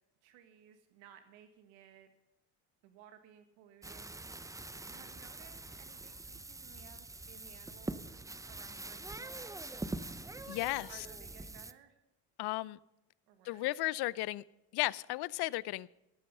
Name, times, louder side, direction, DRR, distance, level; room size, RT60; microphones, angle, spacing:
voice 1, 0.2-2.1 2.8-4.1 4.9-8.2 8.5-9.7 10.9-12.0 13.3-13.7, right 9 dB, 85° right, 8 dB, 1.7 m, -58 dB
sound 1, 3.8-11.7, right 2 dB, 10° right, 0.6 m, -44 dB
voice 2, 10.5-11.1 12.4-12.8 13.4-14.4 14.7-15.9, left 19 dB, 60° left, 22 dB, 0.6 m, -34 dB
17.5 x 9.2 x 5.5 m, 0.91 s
supercardioid pair, 80°, 43 cm